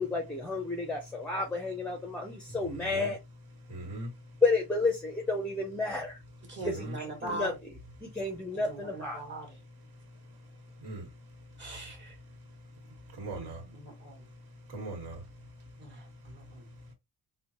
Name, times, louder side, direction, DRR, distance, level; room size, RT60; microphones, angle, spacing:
voice 1, 0.0-3.2 4.4-6.2 6.6-9.2, left 3 dB, 5° left, 0.5 m, -31 dB
voice 2, 2.7-3.1 3.7-4.1 6.6-6.9 10.8-11.1 13.2-13.6 14.7-15.1, right 2 dB, 65° right, 1.5 m, -39 dB
voice 3, 6.5-7.5 8.7-9.5 11.6-12.1 13.3-14.2 15.8-16.0 16.2-16.6, right 2 dB, 25° right, 1.3 m, -41 dB
5.4 x 2.1 x 2.9 m
cardioid pair, 180°, 40 cm